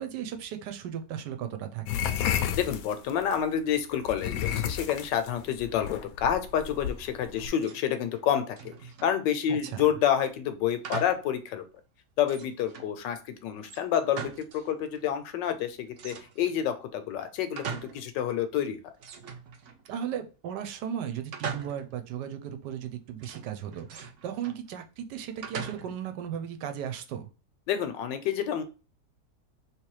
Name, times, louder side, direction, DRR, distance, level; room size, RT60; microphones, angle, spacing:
voice 1, 0.0-2.1 9.7-9.9 19.9-27.3, right 9 dB, 80° right, 7 dB, 1.3 m, -36 dB
sound 1, 1.9-3.4 4.1-7.5, left 9 dB, 70° left, 0.9 m, -31 dB
voice 2, 2.6-11.6 12.2-18.8 27.7-28.6, left 9 dB, 85° left, 9 dB, 1.4 m, -29 dB
sound 2, 7.3-7.9 8.1-9.2 10.8-11.3 11.7-11.8 12.2-12.9 13.6-14.7 14.9-15.0 16.0-16.6 17.1-18.1 18.4-18.5 19.0-20.1 21.3-22.0 23.2-24.6 25.4-26.1, right 6 dB, 60° right, 0.8 m, -41 dB
3.3 x 3.1 x 4.7 m, 0.33 s
omnidirectional pair, 1.9 m